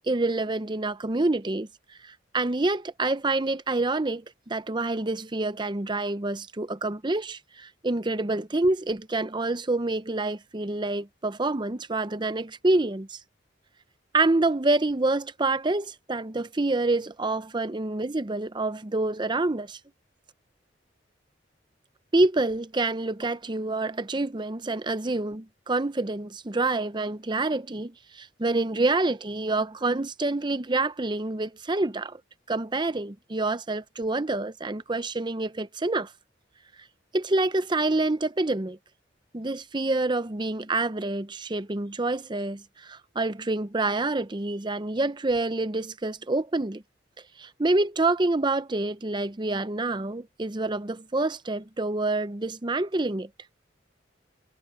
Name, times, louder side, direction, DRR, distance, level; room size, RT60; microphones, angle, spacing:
voice 1, 0.1-1.7 2.0-13.2 14.1-19.8 22.1-32.2 32.5-36.1 37.1-38.8 39.3-46.8 47.4-53.3, right 2 dB, 25° right, 0.7 m, -27 dB
head